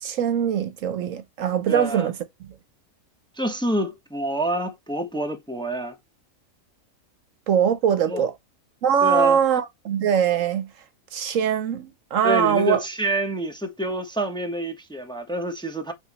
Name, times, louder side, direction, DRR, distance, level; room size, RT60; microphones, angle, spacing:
voice 1, 0.0-2.5 7.5-8.3 8.8-10.7 11.1-12.8, right 8 dB, 70° right, 1.1 m, -22 dB
voice 2, 1.7-2.1 3.4-5.9 8.1-8.2 9.0-9.4 12.2-15.9, right 1 dB, 5° left, 1.0 m, -27 dB
9.0 x 3.5 x 3.0 m
omnidirectional pair, 1.4 m